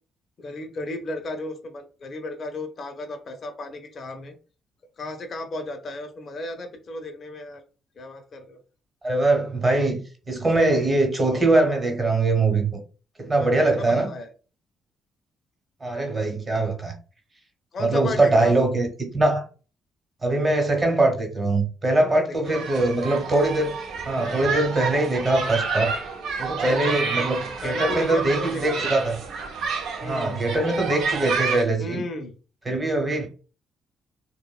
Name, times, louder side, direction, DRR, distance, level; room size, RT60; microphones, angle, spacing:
voice 1, 0.4-4.4 5.0-7.6 8.0-8.6 13.4-14.3 17.7-18.7 21.9-22.6 26.5-27.0 27.6-28.9 30.0-30.4 31.8-32.3, left 2 dB, 50° left, 0.5 m, -34 dB
voice 2, 9.0-12.8 13.2-14.1 15.8-16.9 17.8-19.4 20.2-23.8 24.1-25.9 26.4-29.2 30.0-32.0 32.7-33.3, right 2 dB, 25° right, 1.0 m, -22 dB
sound 1, 22.5-31.6, right 5 dB, 80° right, 0.5 m, -29 dB
2.9 x 2.1 x 2.3 m
cardioid pair, 90°, 0 cm